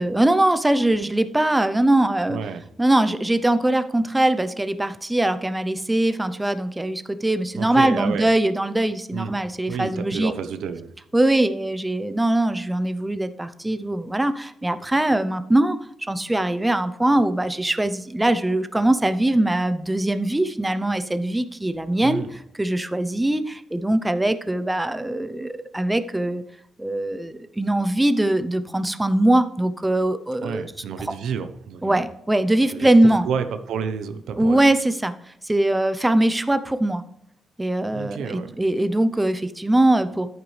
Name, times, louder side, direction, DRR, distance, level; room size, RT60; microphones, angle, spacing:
voice 1, 0.0-2.4 2.8-10.3 11.1-15.8 16.1-22.2 22.6-23.4 23.7-26.4 26.8-30.7 31.8-33.2 34.3-35.1 35.5-37.0 37.6-40.3, right 1 dB, 10° right, 11 dB, 0.7 m, -21 dB
voice 2, 2.3-2.6 7.6-8.3 9.1-9.4 9.7-10.9 22.0-22.3 30.4-32.0 32.7-34.6 37.9-38.6, right 6 dB, 85° right, 9 dB, 0.9 m, -30 dB
11.0 x 9.2 x 3.3 m, 0.75 s
cardioid pair, 100°, 0 cm